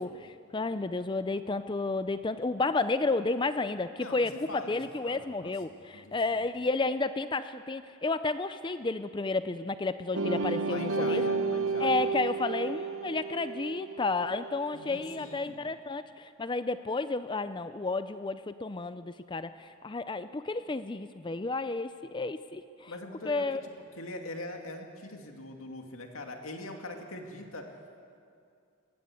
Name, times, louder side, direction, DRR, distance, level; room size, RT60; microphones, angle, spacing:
voice 1, 0.0-11.2 11.8-22.9 23.2-23.6, left 3 dB, 20° left, 12 dB, 0.4 m, -31 dB
voice 2, 4.0-6.5 10.6-12.0 14.7-15.6 22.9-23.5 24.0-27.7, left 2 dB, 75° left, 3 dB, 2.3 m, -42 dB
sound 1, 10.1-14.8, right 4 dB, 70° right, 1.1 m, -32 dB
21.0 x 16.0 x 8.4 m, 2.4 s
head